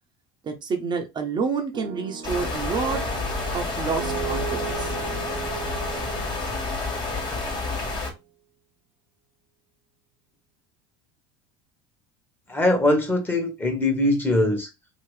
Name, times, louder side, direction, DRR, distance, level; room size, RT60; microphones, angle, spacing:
voice 1, 0.4-3.0 3.5-5.0, right 5 dB, 35° right, 0.9 m, -28 dB
sound 1, 1.7-7.8, right 12 dB, 85° right, 0.9 m, -37 dB
sound 2, 2.2-8.1, left 3 dB, 35° left, 1.6 m, -29 dB
voice 2, 12.5-14.7, left 1 dB, 15° left, 1.4 m, -22 dB
3.0 x 2.9 x 3.2 m
hypercardioid pair, 85°, 13 cm